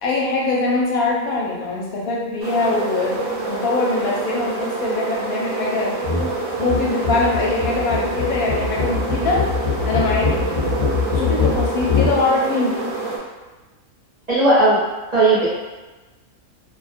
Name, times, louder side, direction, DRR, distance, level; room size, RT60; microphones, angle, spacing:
voice 1, 0.0-3.2 3.4-5.9 6.6-9.4 9.8-10.6 11.1-12.8, left 3 dB, 85° left, -3 dB, 1.0 m, -22 dB
sound 1, 2.4-13.2, right 3 dB, 70° right, 0.8 m, -27 dB
sound 2, 6.0-6.3 6.6-12.2, left 5 dB, 65° left, 0.3 m, -22 dB
voice 2, 14.3-14.8 15.1-15.5, right 2 dB, 40° right, -11 dB, 0.7 m, -15 dB
2.4 x 2.1 x 2.5 m, 1.2 s
omnidirectional pair, 1.5 m